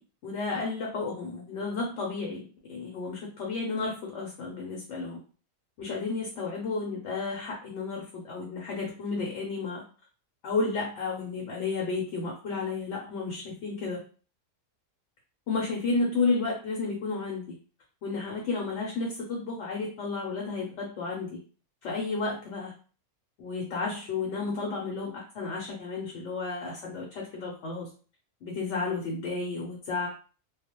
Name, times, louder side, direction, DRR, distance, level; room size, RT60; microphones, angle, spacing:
voice 1, 0.2-5.2 5.8-9.8 10.4-14.0 15.5-17.6 18.0-21.4 21.8-22.7 23.4-27.9 28.4-30.1, left 3 dB, 65° left, -1 dB, 0.9 m, -32 dB
2.3 x 2.1 x 2.9 m, 0.39 s
omnidirectional pair, 1.5 m